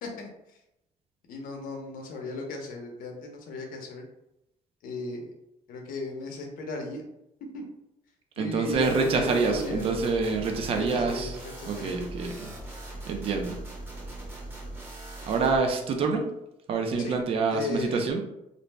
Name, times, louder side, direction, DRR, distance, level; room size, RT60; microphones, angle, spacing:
voice 1, 1.3-4.0 4.8-5.3 5.7-7.1 7.5-7.7 8.4-9.8 10.7-12.0 17.0-17.2 17.5-18.0, left 3 dB, 80° left, 2 dB, 0.7 m, -35 dB
voice 2, 8.4-11.4 11.6-12.5 13.1-13.5 15.3-16.3 16.7-18.2, right 4 dB, 40° right, 3 dB, 0.4 m, -26 dB
sound 1, 8.7-15.6, right 1 dB, 15° right, 0.7 m, -40 dB
2.5 x 2.0 x 3.2 m, 0.85 s
cardioid pair, 160°, 14 cm